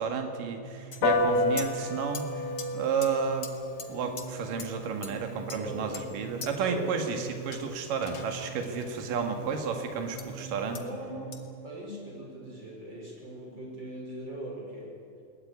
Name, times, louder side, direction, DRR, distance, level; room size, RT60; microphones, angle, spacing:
voice 1, 0.0-2.2 2.7-3.5 3.9-10.8, right 5 dB, 65° right, 5 dB, 3.4 m, -32 dB
sound 1, 0.6-11.7, right 8 dB, 45° right, 2.5 m, -45 dB
sound 2, 0.9-1.0 1.6-1.7 2.1-2.3 2.6-2.7 3.0-3.1 3.4-3.5 3.8-3.9 4.2-4.3 4.6-4.7 5.0-5.1 5.5-6.1 6.4-6.5 7.5-8.9 10.2-10.3 10.8-10.9 11.3-11.4, left 6 dB, 45° left, 1.5 m, -41 dB
Piano, 1.0-10.8, left 2 dB, 70° left, 3.8 m, -34 dB
voice 2, 1.2-1.6 5.5-6.0 6.6-7.0 10.8-11.4 11.6-15.0, right 1 dB, 30° right, -1 dB, 6.1 m, -40 dB
21.5 x 19.0 x 9.6 m, 2.4 s
omnidirectional pair, 4.4 m